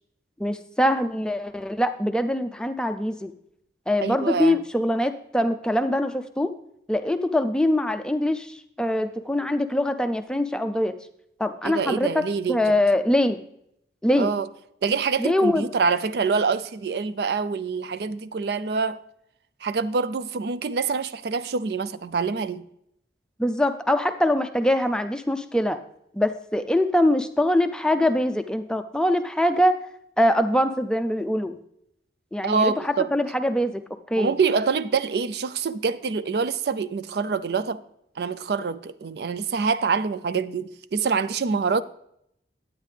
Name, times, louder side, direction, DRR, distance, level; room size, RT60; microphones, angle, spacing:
voice 1, 0.4-3.3 3.9-6.5 6.9-10.9 11.4-13.4 14.0-14.3 15.2-15.7 23.4-25.8 26.1-29.8 30.2-31.6 32.3-34.4, left 1 dB, 5° left, 0.4 m, -23 dB
voice 2, 4.0-4.6 11.6-12.6 14.2-14.5 14.8-19.0 19.6-22.6 32.4-33.1 34.2-37.8 38.2-41.8, right 5 dB, 65° right, 0.4 m, -25 dB
10.0 x 9.0 x 3.2 m
head